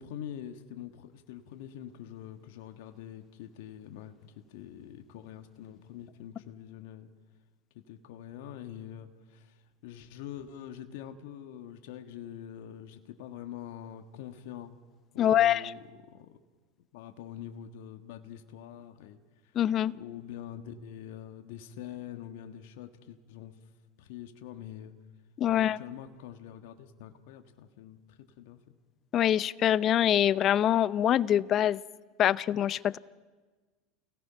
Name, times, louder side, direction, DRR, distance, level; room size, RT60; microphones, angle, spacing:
voice 1, 0.0-7.1 7.7-14.7 15.1-15.8 16.1-16.4 16.9-19.5 19.9-23.6 24.0-24.9 25.5-28.6, left 10 dB, 70° left, 6 dB, 1.5 m, -45 dB
voice 2, 15.2-15.7 19.6-19.9 25.4-25.8 29.1-31.8 32.2-33.0, left 11 dB, 45° left, 18 dB, 0.6 m, -24 dB
29.5 x 17.5 x 5.8 m, 1.3 s
hypercardioid pair, 95°, 0 cm